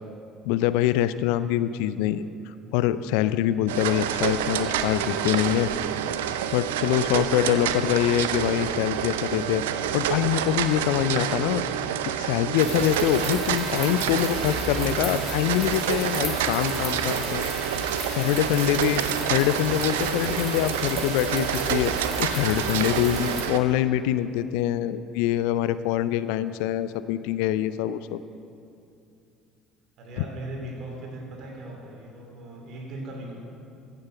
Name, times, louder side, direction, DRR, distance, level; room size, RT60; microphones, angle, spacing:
voice 1, 0.4-2.3 2.7-5.7 6.5-9.6 9.9-11.6 12.1-17.7 18.1-28.2, left 12 dB, 65° left, 14 dB, 0.4 m, -25 dB
sound 1, 3.7-23.6, right 10 dB, 75° right, 0.5 m, -28 dB
sound 2, 12.6-23.4, left 1 dB, 20° left, 2.8 m, -35 dB
voice 2, 16.7-17.2 26.2-26.7 30.0-33.3, right 1 dB, 55° right, 0 dB, 2.9 m, -40 dB
15.0 x 7.6 x 6.0 m, 2.6 s
figure-of-eight pair, 60°, 0 cm